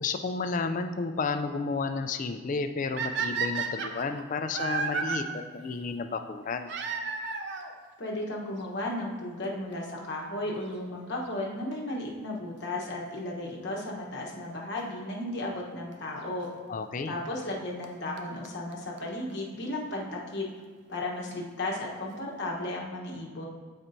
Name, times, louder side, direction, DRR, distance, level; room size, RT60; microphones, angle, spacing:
voice 1, 0.0-6.7 16.7-17.1, left 4 dB, 35° left, 7 dB, 0.3 m, -32 dB
sound 1, 3.0-5.2 6.7-7.7 8.6-8.7 9.4-9.5 9.7-9.8 11.7-12.0 14.8-14.9 15.9-16.0 17.5-17.6 17.8-17.9 18.2-18.3 18.4-18.5 18.7-18.8 19.0-19.1 19.3-19.4, right 5 dB, 50° right, 0.5 m, -32 dB
voice 2, 8.0-16.5 17.0-20.5 20.9-23.5, left 1 dB, 50° left, -2 dB, 1.1 m, -34 dB
12.5 x 4.3 x 2.7 m, 1.5 s
head